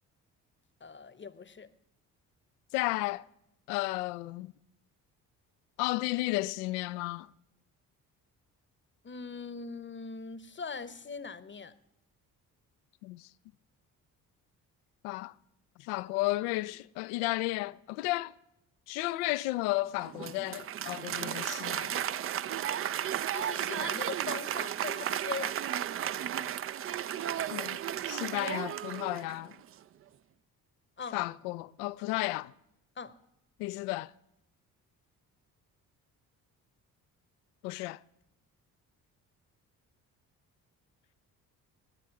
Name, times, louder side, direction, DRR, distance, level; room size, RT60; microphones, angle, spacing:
voice 1, 0.8-1.7 9.0-11.7 23.3-25.6 31.0-31.2 33.0-33.2, left 5 dB, 25° left, 0.9 m, -41 dB
voice 2, 2.7-3.3 3.7-4.5 5.8-7.3 13.0-13.3 15.0-15.3 15.8-18.3 18.9-22.1 27.5-27.8 28.1-29.6 31.1-32.5 33.6-34.1 37.6-38.0, left 19 dB, 75° left, 0.5 m, -33 dB
Applause, 20.0-29.5, right 10 dB, 30° right, 0.4 m, -34 dB
19.0 x 9.1 x 4.7 m
hypercardioid pair, 45°, 47 cm